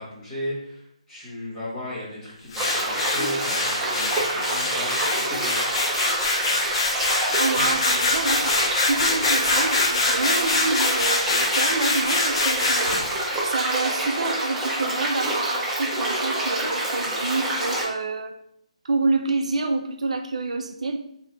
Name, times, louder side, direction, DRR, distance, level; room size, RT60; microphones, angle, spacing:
voice 1, 0.0-5.9 7.6-7.7, left 1 dB, 15° left, -8 dB, 1.3 m, -35 dB
sound 1, 2.5-13.2, left 3 dB, 50° left, 0.8 m, -24 dB
sound 2, 2.6-17.8, right 1 dB, 10° right, 0.7 m, -27 dB
voice 2, 7.4-13.0 13.5-18.4 18.8-21.0, right 3 dB, 70° right, 5 dB, 0.4 m, -27 dB
3.8 x 2.8 x 3.4 m, 0.73 s
hypercardioid pair, 160°, 4 cm